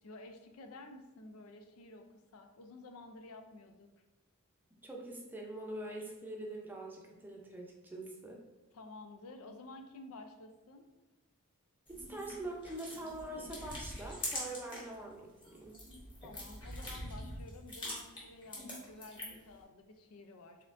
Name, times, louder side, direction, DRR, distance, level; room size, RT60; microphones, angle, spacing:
voice 1, 0.0-2.0 2.3-3.9 8.7-10.9 16.2-20.6, left 2 dB, 80° left, 6 dB, 0.5 m, -52 dB
voice 2, 4.8-8.4 11.9-15.7, right 1 dB, 10° right, -1 dB, 0.5 m, -44 dB
sound 1, 11.9-14.9 15.3-19.5, left 1 dB, 20° left, 1.2 m, -44 dB
4.3 x 3.7 x 2.5 m, 1.1 s
head